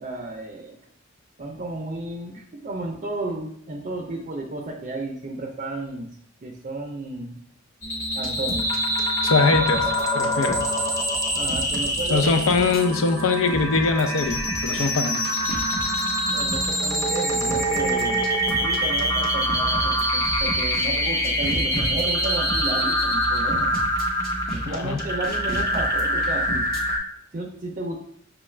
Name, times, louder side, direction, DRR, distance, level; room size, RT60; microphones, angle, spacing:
voice 1, 0.0-0.8 1.4-6.1 6.4-7.4 8.1-8.7 11.3-12.5 16.3-23.7 24.5-26.7 27.3-28.0, right 2 dB, 40° right, 2 dB, 0.5 m, -32 dB
sound 1, 7.8-27.0, equal, 15° left, 0.8 m, -24 dB
sound 2, 8.2-10.7 11.0-11.1 11.5-12.8 13.5-14.9 15.2-16.0 16.5-16.7 17.5-20.9 21.2-22.7 23.0-23.1 23.5-26.8, right 1 dB, 45° left, 1.0 m, -35 dB
voice 2, 9.2-10.6 12.1-15.2 24.7-25.0, left 3 dB, 80° left, 8 dB, 0.5 m, -22 dB
6.0 x 2.3 x 3.2 m, 0.67 s
head